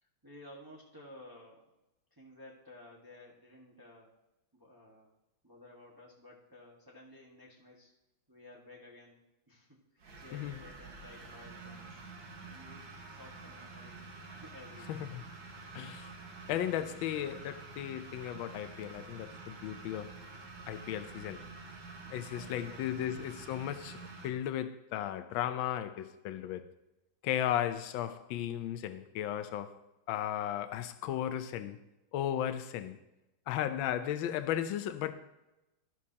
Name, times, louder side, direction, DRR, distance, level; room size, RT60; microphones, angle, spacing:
voice 1, 0.2-1.7 2.1-4.1 4.5-5.1 5.4-7.9 8.3-9.2 9.5-9.7 9.9-12.0 12.4-14.0 14.3-15.0 22.0-22.8, left 1 dB, 10° right, 1.3 m, -54 dB
sound 1, 10.0-24.3, right 3 dB, 75° right, 2.2 m, -48 dB
voice 2, 14.9-15.2 15.7-16.1 16.5-20.2 20.7-21.5 22.1-26.6 27.2-29.7 30.1-31.8 32.1-33.0 33.5-35.1, left 11 dB, 80° left, 1.4 m, -35 dB
12.0 x 12.0 x 2.8 m
omnidirectional pair, 2.2 m